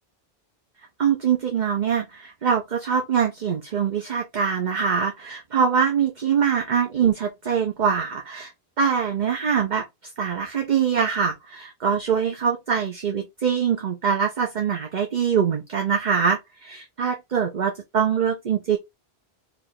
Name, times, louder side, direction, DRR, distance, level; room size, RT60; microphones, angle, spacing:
voice 1, 1.0-8.5 8.8-9.8 10.2-18.8, right 7 dB, 50° right, 0.9 m, -23 dB
4.5 x 2.6 x 3.9 m
omnidirectional pair, 1.0 m